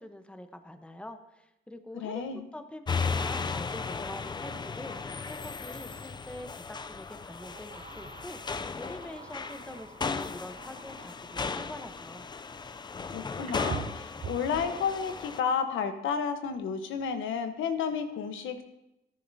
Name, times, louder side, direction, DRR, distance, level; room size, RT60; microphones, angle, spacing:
voice 1, 0.0-2.2 2.5-12.3, left 1 dB, 5° left, 7 dB, 0.9 m, -45 dB
voice 2, 1.9-2.4 13.1-18.6, left 6 dB, 80° left, 7 dB, 1.1 m, -31 dB
sound 1, 2.9-15.4, left 4 dB, 20° left, 0.4 m, -36 dB
sound 2, 6.3-6.5 7.4-11.7 12.9-13.0 13.4-14.6, right 7 dB, 35° right, 0.6 m, -45 dB
13.5 x 10.0 x 2.7 m, 0.89 s
cardioid pair, 90°, 20 cm